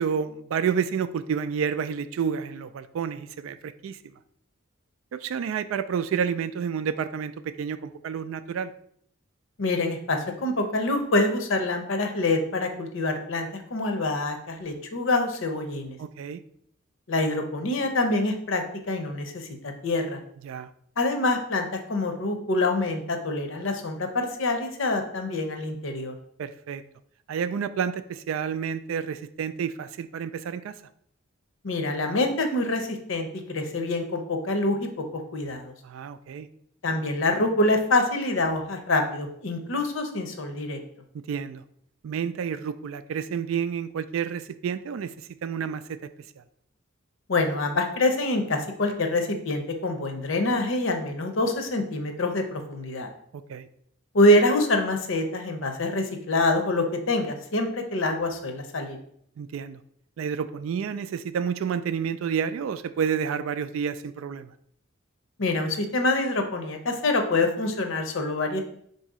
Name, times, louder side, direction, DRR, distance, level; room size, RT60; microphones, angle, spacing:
voice 1, 0.0-4.1 5.1-8.7 16.0-16.4 20.4-20.7 26.4-26.8 27.3-30.7 35.8-36.5 41.3-41.6 42.0-46.0 46.4-46.5 53.3-53.7 59.4-59.8 60.2-64.5, right 7 dB, 80° right, 12 dB, 0.3 m, -30 dB
voice 2, 9.6-16.0 17.1-20.2 21.0-26.1 31.6-34.9 35.3-35.7 36.8-40.8 47.3-53.1 54.1-59.0 65.4-68.6, left 2 dB, 70° left, 5 dB, 0.7 m, -26 dB
4.1 x 2.7 x 4.8 m, 0.67 s
head